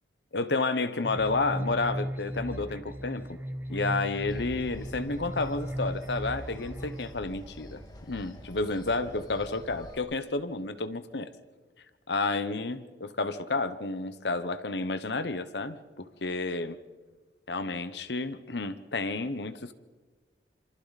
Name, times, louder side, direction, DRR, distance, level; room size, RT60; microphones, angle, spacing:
voice 1, 0.3-3.4 3.7-7.8 8.1-11.3 12.1-16.8 17.5-19.7, left 3 dB, 65° left, 11 dB, 1.0 m, -31 dB
sound 1, 1.0-7.1, equal, 10° right, 0.9 m, -36 dB
sound 2, 4.3-10.0, equal, 20° left, 2.0 m, -46 dB
27.0 x 24.5 x 4.2 m, 1.3 s
head